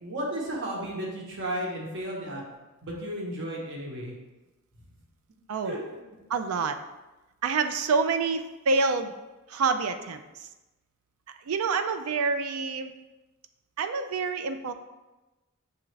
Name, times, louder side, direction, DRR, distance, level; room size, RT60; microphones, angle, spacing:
voice 1, 0.0-2.4 2.8-4.1 5.6-5.8, right 1 dB, 60° right, -2 dB, 1.0 m, -33 dB
voice 2, 6.3-6.8 7.4-9.1 9.5-10.5 11.3-12.9 13.8-14.7, right 4 dB, 85° right, 9 dB, 0.4 m, -27 dB
6.8 x 2.4 x 3.2 m, 1.1 s
head